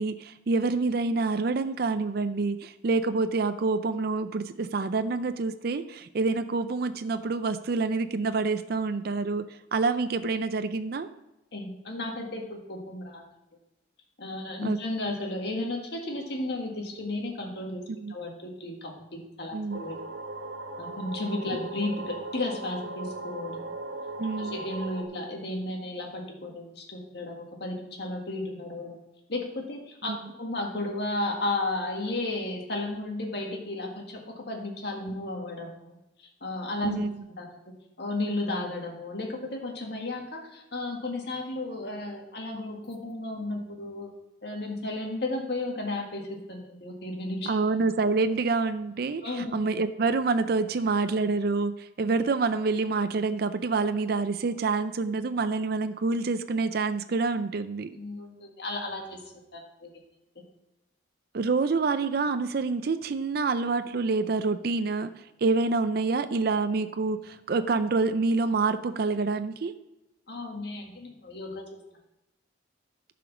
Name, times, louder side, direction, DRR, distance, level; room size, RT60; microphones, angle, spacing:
voice 1, 0.0-11.1 14.6-14.8 17.9-18.2 19.5-19.8 24.2-24.6 30.0-30.2 36.8-37.1 47.5-57.9 61.3-69.7, right 3 dB, 55° right, 10 dB, 0.4 m, -27 dB
voice 2, 11.5-13.2 14.2-17.8 18.1-20.0 20.8-23.6 24.4-29.0 29.3-35.9 36.4-37.0 37.4-37.7 38.0-44.1 44.4-47.6 49.2-49.5 58.0-59.2 59.5-59.9 70.3-71.6, left 2 dB, 60° left, 1 dB, 1.8 m, -33 dB
sound 1, 19.7-25.0, right 2 dB, 90° right, 1.3 m, -38 dB
11.0 x 5.1 x 5.9 m, 0.92 s
head